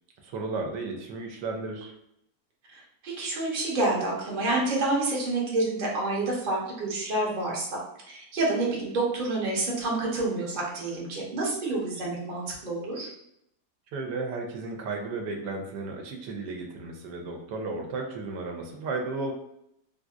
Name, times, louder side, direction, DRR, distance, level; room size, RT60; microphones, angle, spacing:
voice 1, 0.2-1.9 13.9-19.3, right 3 dB, 85° right, 2 dB, 1.3 m, -34 dB
voice 2, 2.7-7.8 8.1-13.1, right 2 dB, 40° right, -3 dB, 0.8 m, -28 dB
3.5 x 2.6 x 2.4 m, 0.77 s
omnidirectional pair, 1.8 m